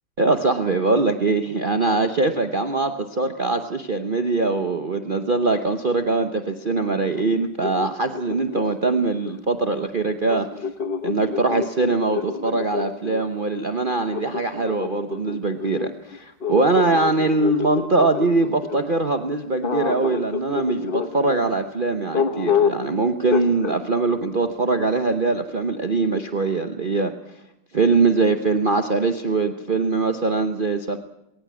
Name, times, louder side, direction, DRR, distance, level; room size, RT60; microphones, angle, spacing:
voice 1, 0.2-10.5 11.0-27.1 27.7-31.0, right 3 dB, 40° right, 6 dB, 0.7 m, -22 dB
sound 1, 7.1-9.5 10.3-13.3 14.1-18.9 19.6-21.4 22.1-22.9 23.3-23.8, left 6 dB, 35° left, 1.1 m, -28 dB
21.5 x 18.5 x 7.6 m, 0.89 s
omnidirectional pair, 2.1 m